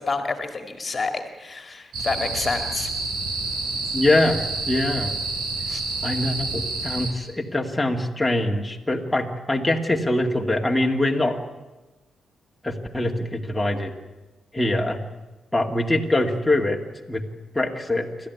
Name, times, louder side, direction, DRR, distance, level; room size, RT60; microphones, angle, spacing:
voice 1, 0.0-2.9 5.7-5.8, left 4 dB, 35° left, 6 dB, 2.2 m, -28 dB
sound 1, 1.9-7.1, right 3 dB, 85° right, 6.1 m, -28 dB
voice 2, 3.9-5.2 6.0-11.4 12.6-13.9 14.5-15.0 15.5-16.8 17.1-17.2 17.5-18.1, left 1 dB, 10° left, 0 dB, 2.4 m, -23 dB
28.0 x 13.0 x 9.6 m, 1.2 s
cardioid pair, 80°, 0 cm